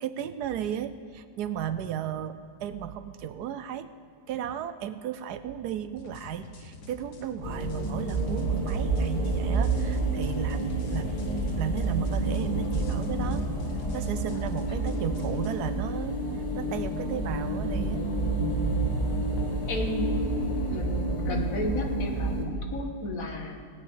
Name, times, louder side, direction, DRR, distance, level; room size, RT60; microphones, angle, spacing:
voice 1, 0.0-3.9 4.3-11.2 11.6-13.4 13.9-16.2 16.6-18.0, right 9 dB, 75° right, 12 dB, 1.2 m, -34 dB
sound 1, 6.0-15.5, left 3 dB, 70° left, 1.8 m, -47 dB
sound 2, 7.4-22.5, right 2 dB, 25° left, 1.4 m, -29 dB
voice 2, 19.4-20.2 20.7-23.7, left 3 dB, 55° left, 3 dB, 1.7 m, -34 dB
18.0 x 6.2 x 8.6 m, 2.2 s
omnidirectional pair, 1.8 m